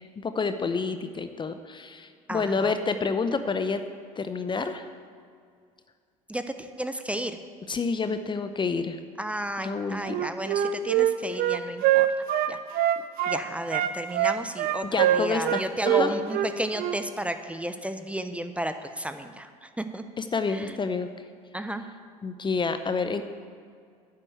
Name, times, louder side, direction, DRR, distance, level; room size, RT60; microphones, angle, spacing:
voice 1, 0.0-3.8 4.2-4.8 7.7-9.0 9.6-10.2 14.9-16.1 20.2-21.1 22.2-23.2, left 4 dB, 25° left, 9 dB, 0.8 m, -28 dB
voice 2, 2.3-2.8 6.3-7.4 9.2-12.1 12.5-12.6 13.3-20.0 20.5-20.8 21.5-21.9, right 1 dB, 5° right, 9 dB, 0.8 m, -33 dB
Wind instrument woodwind instrument, 10.0-13.4 13.7-17.0, right 11 dB, 60° right, 0.8 m, -24 dB
9.9 x 7.7 x 8.1 m, 2.2 s
hypercardioid pair, 65°, 18 cm